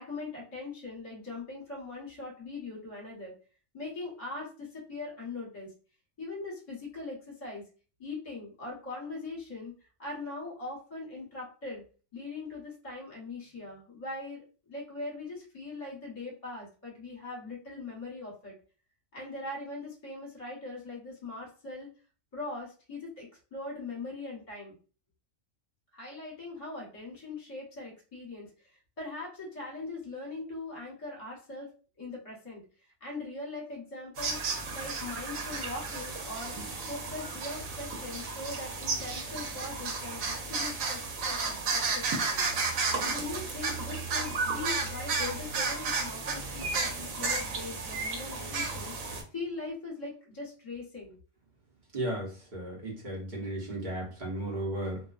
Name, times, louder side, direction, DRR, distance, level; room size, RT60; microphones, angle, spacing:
voice 1, 0.0-3.3 3.7-5.7 6.2-7.6 8.0-9.7 10.0-11.8 12.1-18.5 19.1-21.9 22.3-24.7 25.9-28.5 29.0-31.7 32.0-32.6 33.0-34.4 34.7-36.5 36.8-42.4 42.9-48.9 49.3-51.2, left 3 dB, 30° left, -3 dB, 1.0 m, -41 dB
sound 1, 34.2-49.2, right 4 dB, 85° right, 1.0 m, -33 dB
voice 2, 51.9-55.0, right 1 dB, 40° right, -2 dB, 0.9 m, -35 dB
2.4 x 2.2 x 2.3 m, 0.36 s
omnidirectional pair, 1.4 m